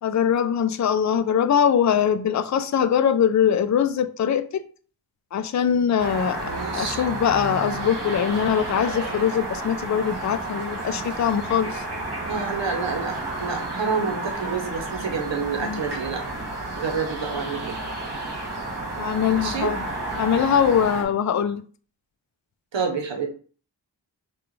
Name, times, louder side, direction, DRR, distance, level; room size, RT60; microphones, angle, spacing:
voice 1, 0.0-4.6 5.3-11.8 15.6-15.8 19.0-19.9 20.1-21.6, left 8 dB, 45° left, 0.4 m, -22 dB
sound 1, 6.0-21.0, right 2 dB, 65° right, 1.6 m, -31 dB
voice 2, 6.4-7.0 12.2-16.2 16.8-17.8 19.3-19.7 22.7-23.3, right 5 dB, 85° right, 0.9 m, -28 dB
5.8 x 2.4 x 3.1 m
wide cardioid pair, 60°, 43 cm